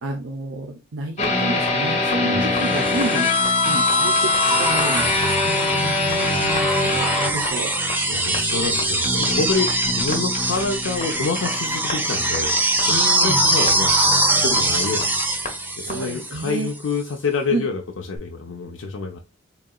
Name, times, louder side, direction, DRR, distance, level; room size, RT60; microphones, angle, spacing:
voice 1, 0.0-3.3 3.7-7.7 12.9-13.4 15.8-16.7 17.5-17.7, right 2 dB, 75° right, 0.6 m, -30 dB
sound 1, 1.2-15.5 15.9-16.0, left 3 dB, 35° left, 1.0 m, -24 dB
voice 2, 2.2-2.9 8.1-12.9 13.2-14.0 14.3-15.2 15.8-19.2, left 4 dB, 70° left, 0.5 m, -27 dB
sound 2, 2.7-16.7 18.2-18.3, right 1 dB, 10° right, 0.6 m, -23 dB
4.0 x 3.7 x 2.3 m
head